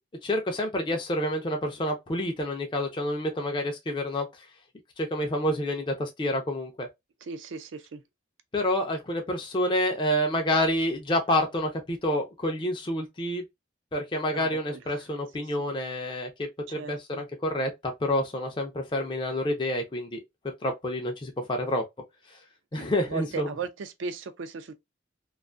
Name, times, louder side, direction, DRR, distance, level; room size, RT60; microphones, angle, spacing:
voice 1, 0.2-4.3 5.0-6.9 8.5-13.4 13.9-17.7 18.0-20.2 20.6-21.8 22.7-23.5, left 1 dB, 25° left, 0.4 m, -28 dB
voice 2, 7.2-8.0 14.3-15.0 15.4-15.6 16.7-17.2 22.7-24.7, right 4 dB, 75° right, 0.4 m, -38 dB
2.4 x 2.3 x 2.4 m
head